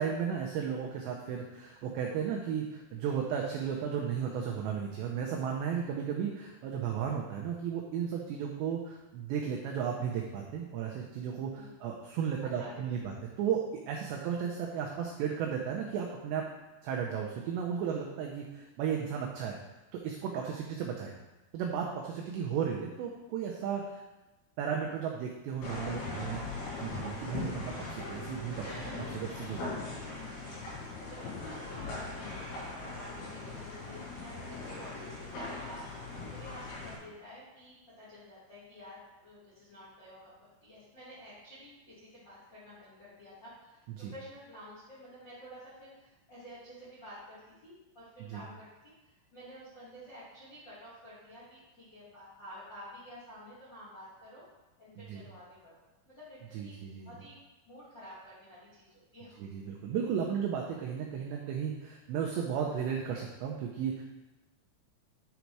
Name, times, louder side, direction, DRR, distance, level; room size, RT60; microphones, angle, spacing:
voice 1, 0.0-16.5 16.8-19.6 19.9-21.1 21.5-24.0 24.6-26.5 26.8-29.7 44.0-44.1 48.3-48.4 55.0-55.2 56.5-57.1 59.4-64.0, right 7 dB, 90° right, 0 dB, 2.5 m, -34 dB
voice 2, 11.4-11.9 12.4-13.0 22.3-22.4 31.0-35.8 36.3-48.7 49.0-54.5 54.8-57.3 57.6-59.4, equal, 60° left, -9 dB, 1.1 m, -51 dB
sound 1, 25.6-36.9, left 3 dB, 80° left, 6.1 m, -40 dB
11.0 x 4.0 x 4.6 m, 1.0 s
omnidirectional pair, 5.9 m